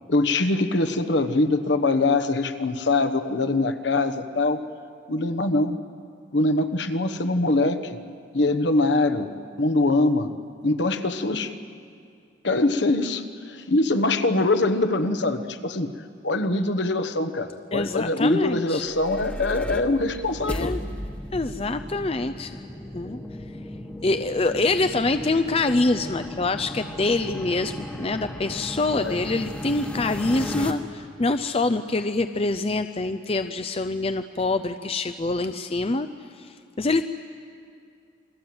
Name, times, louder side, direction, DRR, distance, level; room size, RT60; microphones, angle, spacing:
voice 1, 0.1-4.6 5.1-5.8 6.3-8.0 8.3-9.3 9.6-10.3 10.6-11.5 12.4-15.9 16.2-20.8 28.9-29.2, left 2 dB, 65° left, 9 dB, 1.2 m, -23 dB
voice 2, 17.7-18.8 20.5-20.8 21.3-22.6 22.9-23.2 24.0-36.1 36.4-37.1, left 2 dB, 30° left, 10 dB, 0.5 m, -25 dB
sound 1, 18.7-30.7, left 1 dB, 5° left, 1.2 m, -35 dB
28.5 x 22.0 x 7.9 m, 2.3 s
head